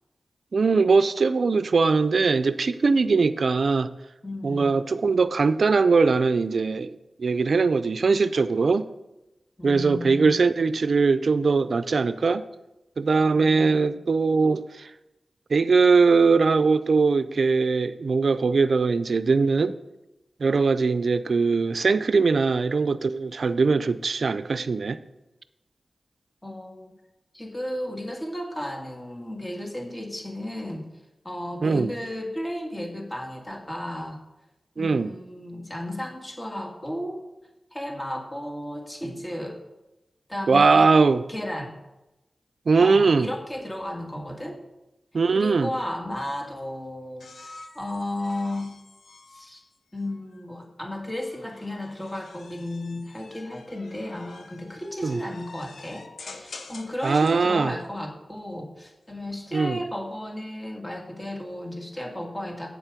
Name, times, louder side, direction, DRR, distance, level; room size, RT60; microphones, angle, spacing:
voice 1, 0.5-3.9 4.4-8.9 9.6-12.4 13.0-14.9 15.5-19.7 20.4-25.0 31.6-31.9 34.8-35.1 40.5-41.2 42.7-43.3 45.1-45.7 55.0-55.2 57.0-57.8 59.5-59.8, right 4 dB, 75° right, 13 dB, 0.4 m, -21 dB
voice 2, 4.2-4.7 9.6-10.4 26.4-26.9 27.3-30.9 31.2-34.2 34.8-37.2 37.7-39.6 40.3-40.9 41.3-41.8 42.8-44.6 45.3-48.7 49.3-49.6 49.9-56.1 56.3-62.7, left 1 dB, 20° left, 1 dB, 2.1 m, -34 dB
sound 1, 47.2-50.5 51.3-57.5 58.9-59.5, left 3 dB, 85° left, 0.8 m, -47 dB
8.3 x 7.4 x 5.0 m, 0.96 s
cardioid pair, 55°, 0 cm